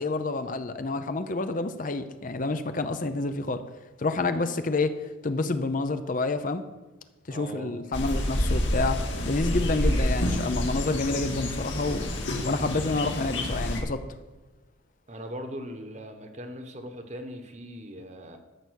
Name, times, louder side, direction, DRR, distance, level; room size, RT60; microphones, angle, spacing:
voice 1, 0.0-3.6 4.0-6.6 7.3-12.1 12.4-14.0, left 3 dB, 40° left, 9 dB, 0.6 m, -28 dB
voice 2, 7.3-7.7 15.1-18.4, equal, 35° right, 6 dB, 1.2 m, -39 dB
sound 1, 7.9-13.8, left 1 dB, 65° left, 2.0 m, -28 dB
13.5 x 7.0 x 6.4 m, 1.2 s
head